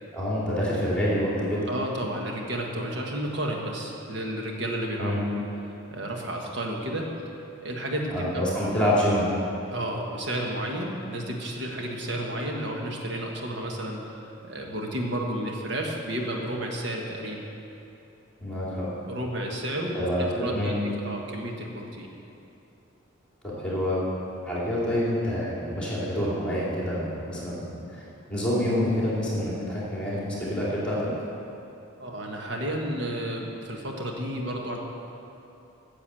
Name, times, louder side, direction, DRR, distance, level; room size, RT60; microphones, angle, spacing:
voice 1, 0.1-1.7 5.0-5.2 8.1-9.3 18.4-18.9 19.9-20.7 23.6-24.1 24.4-28.0 28.3-31.1, equal, 5° left, -8 dB, 2.8 m, -27 dB
voice 2, 1.7-5.2 5.9-7.1 7.6-8.4 9.7-14.2 14.4-17.4 19.1-20.7 21.0-22.1 32.0-34.8, right 1 dB, 55° right, 0 dB, 1.4 m, -32 dB
9.9 x 7.2 x 7.5 m, 2.8 s
head